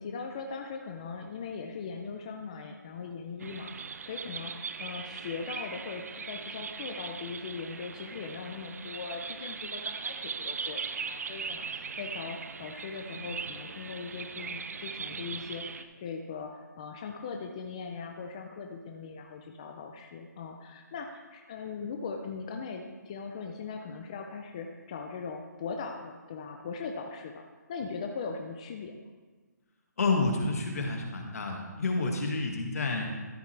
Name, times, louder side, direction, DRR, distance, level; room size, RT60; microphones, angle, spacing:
voice 1, 0.0-29.1, left 5 dB, 20° left, 3 dB, 0.5 m, -40 dB
sound 1, 3.4-15.8, right 5 dB, 55° right, 0.7 m, -39 dB
voice 2, 30.0-33.1, left 3 dB, 55° left, 2 dB, 1.9 m, -29 dB
13.5 x 8.2 x 3.3 m, 1.4 s
hypercardioid pair, 170°, 10 cm